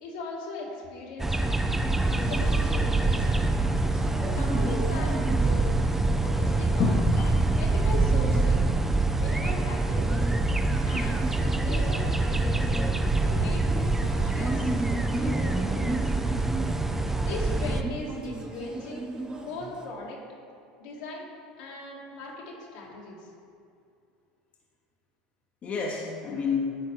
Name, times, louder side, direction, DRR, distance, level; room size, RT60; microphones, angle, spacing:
voice 1, 0.0-1.6 2.0-3.3 4.3-5.2 5.4-5.7 6.2-7.0 7.6-8.7 9.2-10.3 10.8-12.7 13.2-13.7 14.0-16.1 17.2-19.1 19.4-20.2 20.8-21.3 21.6-23.3, left 2 dB, 80° left, -4 dB, 2.1 m, -39 dB
sound 1, 1.2-17.8, right 2 dB, 10° right, 0.5 m, -25 dB
sound 2, 1.7-19.8, right 2 dB, 25° right, 1.2 m, -37 dB
voice 2, 6.8-7.5 25.6-26.8, left 5 dB, 40° left, -1 dB, 1.0 m, -29 dB
10.5 x 4.2 x 4.8 m, 2.5 s
hypercardioid pair, 90°, 4 cm